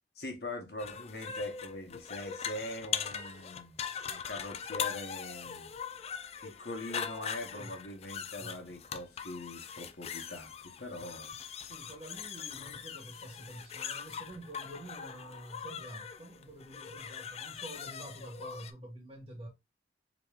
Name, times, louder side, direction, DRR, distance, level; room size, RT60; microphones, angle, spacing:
voice 1, 0.1-3.8 4.1-5.7 6.4-11.4, left 1 dB, 60° left, 1.1 m, -42 dB
sound 1, 0.8-18.7, left 7 dB, 35° left, 0.3 m, -41 dB
voice 2, 11.6-19.5, right 1 dB, 30° right, 1.6 m, -48 dB
5.0 x 3.0 x 2.4 m
head